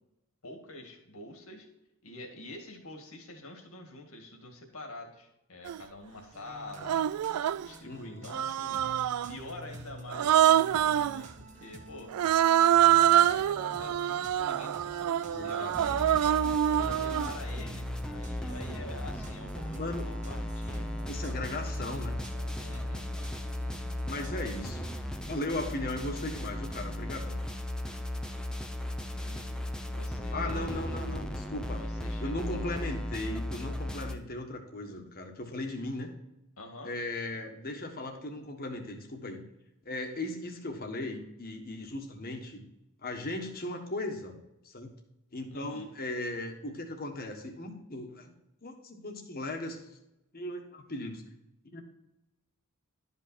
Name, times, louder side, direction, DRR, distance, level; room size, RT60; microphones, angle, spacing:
voice 1, 0.4-1.7 2.0-7.1 7.6-8.8 9.3-12.1 12.7-15.8 16.8-20.9 22.6-23.1 29.1-29.6 29.8-30.8 31.8-32.6 36.6-36.9 45.5-45.9, left 2 dB, 70° left, 3 dB, 2.1 m, -46 dB
Human voice, 5.7-5.8 6.8-7.7 8.3-9.4 10.1-11.2 12.1-17.4, right 11 dB, 80° right, 0.3 m, -25 dB
sound 1, 6.3-24.6, right 1 dB, 30° right, 1.3 m, -49 dB
voice 2, 7.8-8.3 15.3-16.0 16.8-17.3 19.7-20.1 21.1-22.2 24.1-24.9 25.2-27.4 30.3-31.8 32.2-36.1 36.8-39.4 39.8-42.6 43.0-44.4 44.6-44.9 45.3-48.3 48.6-49.8 50.3-51.2 51.7-51.8, left 2 dB, 40° left, 3 dB, 1.5 m, -37 dB
sound 2, 15.7-34.1, left 1 dB, 5° left, 0.7 m, -36 dB
12.0 x 5.5 x 4.3 m, 0.88 s
head